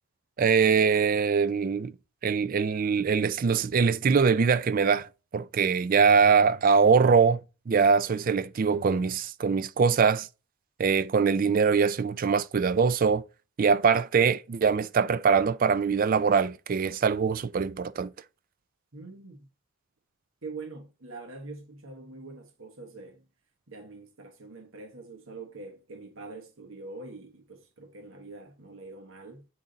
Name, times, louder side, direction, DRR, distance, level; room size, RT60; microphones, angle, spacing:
voice 1, 0.4-1.9 2.2-5.1 5.3-7.4 7.7-10.3 10.8-13.2 13.6-18.1, right 5 dB, 40° right, 0.3 m, -23 dB
voice 2, 18.9-19.5 20.4-23.3 23.7-29.5, right 3 dB, 60° right, 1.2 m, -44 dB
8.4 x 3.8 x 4.0 m
head